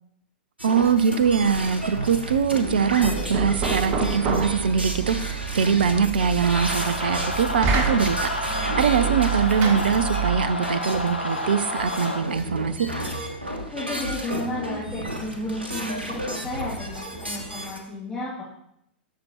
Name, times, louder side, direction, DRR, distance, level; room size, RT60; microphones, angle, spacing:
voice 1, 0.6-12.9, right 6 dB, 65° right, 13 dB, 0.5 m, -23 dB
sound 1, 0.6-17.8, equal, 85° right, 1.3 m, -33 dB
Knock, 2.7-10.6, right 6 dB, 40° right, 1.1 m, -29 dB
sound 2, 6.5-12.2, left 1 dB, 85° left, 1.0 m, -30 dB
voice 2, 13.7-18.4, left 1 dB, 10° left, -11 dB, 2.7 m, -33 dB
12.0 x 6.6 x 2.9 m, 0.76 s
figure-of-eight pair, 95°, 6 cm